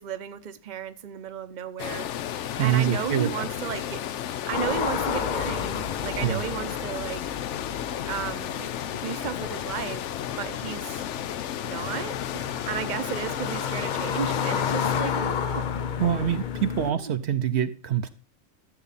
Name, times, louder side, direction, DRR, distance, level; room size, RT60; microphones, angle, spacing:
voice 1, 0.0-2.1 2.6-4.0 4.5-7.2 8.0-8.7 8.9-10.0 10.4-11.0 11.6-15.7 16.8-17.1, right 8 dB, 45° right, 0.8 m, -34 dB
sound 1, 1.8-15.0, left 10 dB, 75° left, 0.9 m, -33 dB
voice 2, 2.6-3.5 6.2-6.4 16.0-18.1, right 10 dB, 65° right, 0.9 m, -25 dB
sound 2, 4.5-16.9, left 7 dB, 50° left, 0.6 m, -32 dB
13.0 x 7.1 x 4.1 m
omnidirectional pair, 1.3 m